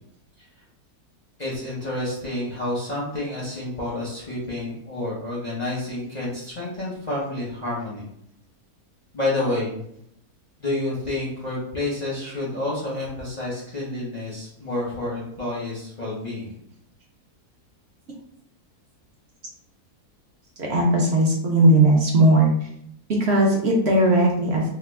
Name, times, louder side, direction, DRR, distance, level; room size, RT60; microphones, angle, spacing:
voice 1, 1.4-8.1 9.1-9.8 10.6-16.5, left 2 dB, 45° left, -6 dB, 0.5 m, -29 dB
voice 2, 20.6-22.5 23.2-24.7, right 1 dB, 60° right, -1 dB, 0.7 m, -18 dB
2.8 x 2.3 x 3.4 m, 0.73 s
omnidirectional pair, 1.7 m